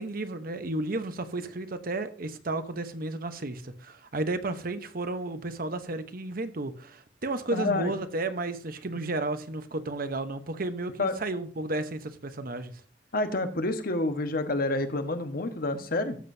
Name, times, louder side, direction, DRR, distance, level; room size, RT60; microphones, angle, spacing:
voice 1, 0.0-12.7, right 2 dB, 55° right, 1.0 m, -33 dB
voice 2, 7.5-7.9 11.0-11.1 13.1-16.2, left 2 dB, 55° left, 1.3 m, -28 dB
13.5 x 7.4 x 2.7 m
head